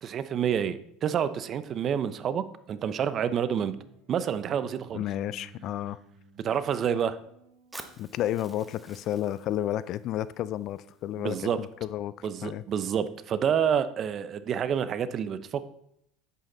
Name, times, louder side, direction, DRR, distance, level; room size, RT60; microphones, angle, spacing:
voice 1, 0.0-3.7 4.1-5.0 6.4-7.2 11.2-11.6 12.2-15.7, right 8 dB, 45° right, 13 dB, 0.8 m, -28 dB
sound 1, 3.7-9.2, right 3 dB, 80° right, 3.2 m, -55 dB
voice 2, 4.9-6.0 8.0-12.6, left 12 dB, 55° left, 17 dB, 0.5 m, -32 dB
Fire, 7.7-11.7, right 2 dB, 10° right, 1.3 m, -50 dB
9.5 x 8.6 x 4.0 m, 0.75 s
hypercardioid pair, 85°, 0 cm